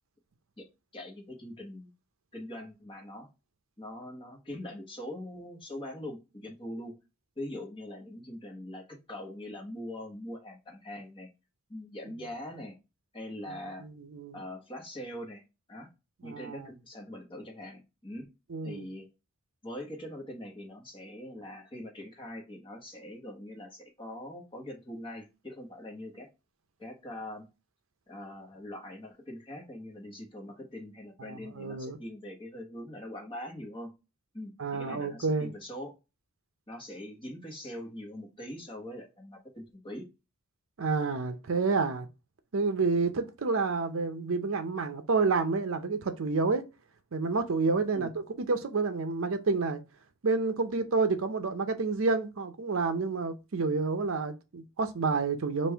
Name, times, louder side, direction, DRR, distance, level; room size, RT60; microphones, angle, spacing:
voice 1, 0.6-1.9 2.3-3.3 3.8-6.9 7.4-11.3 11.7-12.7 13.1-13.9 14.3-15.4 15.7-15.9 16.2-18.3 18.6-19.1 19.6-26.3 26.8-27.5 28.1-33.9 34.3-36.0 36.7-40.0 47.9-48.1, left 1 dB, 25° left, 1.1 m, -42 dB
voice 2, 13.8-14.4 16.2-16.7 18.5-18.9 31.2-32.0 34.6-35.5 40.8-42.1 42.5-46.6 47.1-49.8 50.2-55.7, right 4 dB, 65° right, 0.6 m, -29 dB
5.3 x 2.5 x 3.3 m
head